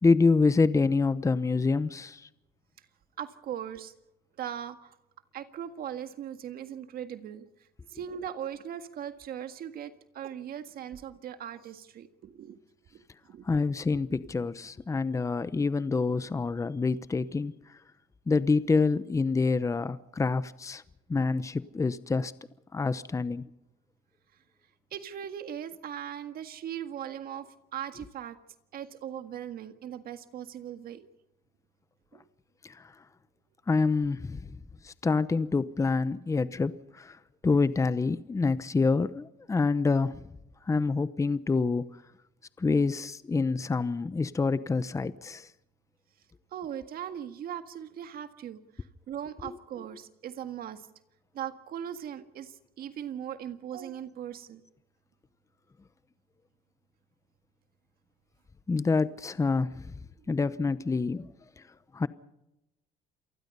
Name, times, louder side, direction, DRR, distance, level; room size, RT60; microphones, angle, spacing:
voice 1, 0.0-2.3 13.4-17.6 18.3-20.8 21.1-22.3 22.7-23.4 32.6-32.9 33.7-34.6 34.8-37.2 37.4-40.2 40.7-41.9 42.6-45.5 49.4-49.6 58.7-59.8 60.3-61.3 61.9-62.1, left 4 dB, 20° left, 0.8 m, -27 dB
voice 2, 3.2-3.9 4.4-5.0 5.3-7.5 7.9-12.6 12.9-13.0 13.3-13.5 24.9-28.4 28.7-31.1 32.1-32.2 46.5-50.8 51.3-54.6 60.2-60.3, right 9 dB, 60° right, 1.8 m, -39 dB
27.5 x 19.5 x 5.5 m
cardioid pair, 110°, 17 cm